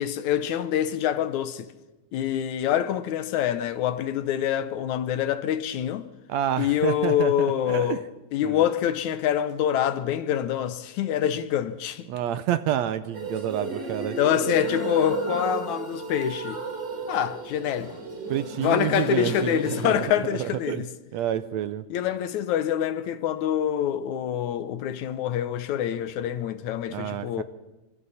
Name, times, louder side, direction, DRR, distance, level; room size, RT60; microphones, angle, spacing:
voice 1, 0.0-1.7 2.1-6.1 6.6-8.0 8.3-12.1 14.2-16.6 17.1-18.0 18.6-20.9 21.9-27.4, left 10 dB, 75° left, 2.3 m, -26 dB
voice 2, 6.3-8.0 8.4-8.6 12.1-14.2 18.3-20.1 20.4-20.9 21.1-21.9 26.9-27.4, right 11 dB, 70° right, 1.9 m, -28 dB
sound 1, 13.1-19.9, right 3 dB, 35° right, 3.8 m, -33 dB
26.5 x 24.5 x 4.2 m
omnidirectional pair, 3.5 m